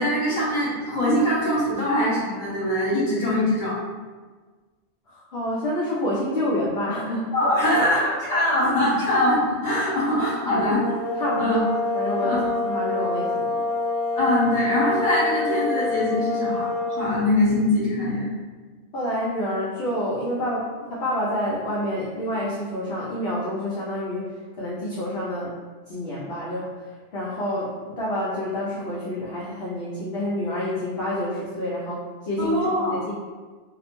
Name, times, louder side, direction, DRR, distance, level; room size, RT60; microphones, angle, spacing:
voice 1, 0.0-3.8 7.3-10.8 11.4-11.6 12.2-12.5 14.1-18.3 32.4-33.0, left 1 dB, 45° left, -9 dB, 1.1 m, -22 dB
voice 2, 5.1-7.5 10.5-10.7 11.2-13.7 18.9-25.5 25.9-33.1, left 1 dB, 65° left, -7 dB, 0.7 m, -28 dB
sound 1, 10.7-17.3, left 3 dB, 75° right, 0.9 m, -26 dB
2.4 x 2.0 x 3.0 m, 1.4 s
omnidirectional pair, 1.2 m